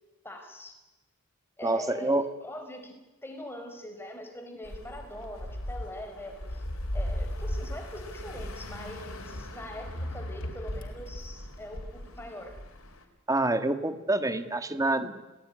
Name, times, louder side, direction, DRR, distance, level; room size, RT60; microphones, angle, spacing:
voice 1, 0.2-0.8 1.6-6.7 6.9-12.6, left 1 dB, 10° left, 4 dB, 4.6 m, -42 dB
voice 2, 1.6-2.3 13.3-15.2, right 2 dB, 15° right, 10 dB, 1.6 m, -27 dB
sound 1, 4.6-13.0, left 1 dB, 80° left, 4.1 m, -37 dB
28.5 x 19.0 x 9.8 m, 1.1 s
head